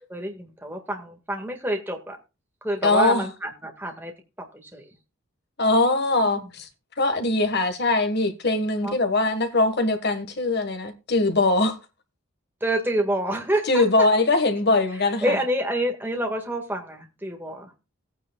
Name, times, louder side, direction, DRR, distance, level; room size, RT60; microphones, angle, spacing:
voice 1, 0.1-2.2 2.6-4.1 4.7-4.8 6.4-6.5 8.8-9.0 12.6-13.8 15.2-17.8, right 1 dB, 10° right, 1.8 m, -27 dB
voice 2, 2.8-3.2 5.6-6.7 7.0-11.8 13.7-15.4, left 2 dB, 50° left, 1.6 m, -21 dB
17.0 x 9.4 x 2.3 m
head